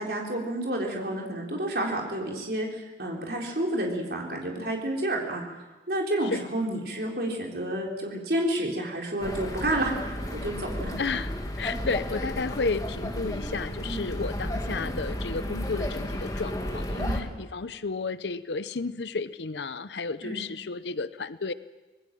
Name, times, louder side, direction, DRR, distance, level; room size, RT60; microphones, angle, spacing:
voice 1, 0.0-5.4 5.9-9.9 10.3-11.0 13.8-14.0 17.0-17.2 20.2-20.4, right 1 dB, 55° right, 0 dB, 4.1 m, -30 dB
sound 1, 9.2-17.2, equal, 20° left, 2.1 m, -33 dB
voice 2, 11.0-11.3 11.6-21.5, left 4 dB, 75° left, 14 dB, 0.7 m, -32 dB
25.5 x 19.5 x 7.6 m, 1.2 s
head